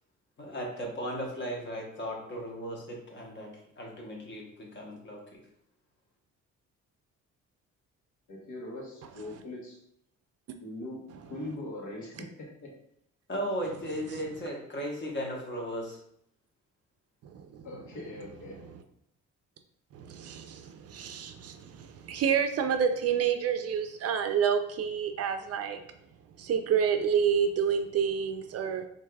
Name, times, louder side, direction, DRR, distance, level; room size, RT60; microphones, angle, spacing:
voice 1, 0.4-5.2 13.3-16.0, equal, 40° left, 0 dB, 1.1 m, -36 dB
voice 2, 8.3-9.8 10.6-11.0 11.3-12.7 17.6-18.6, left 1 dB, 80° left, -2 dB, 1.1 m, -41 dB
voice 3, 19.9-25.8 26.4-28.8, right 7 dB, 55° right, 7 dB, 0.4 m, -28 dB
4.5 x 2.6 x 2.3 m, 0.71 s
cardioid pair, 90°, 30 cm